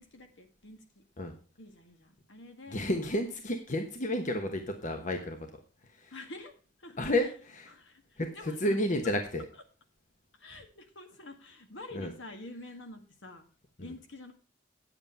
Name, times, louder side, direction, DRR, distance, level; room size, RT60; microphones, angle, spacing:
voice 1, 0.0-1.0 1.6-2.9 6.1-6.5 6.8-7.3 7.7-8.8 10.3-13.4 13.8-14.3, left 2 dB, 70° left, 6 dB, 1.9 m, -48 dB
voice 2, 2.7-5.4 5.9-6.1 7.0-7.7 8.2-9.4 11.9-12.1, left 1 dB, 40° left, 5 dB, 1.1 m, -31 dB
9.2 x 7.9 x 5.6 m, 0.37 s
head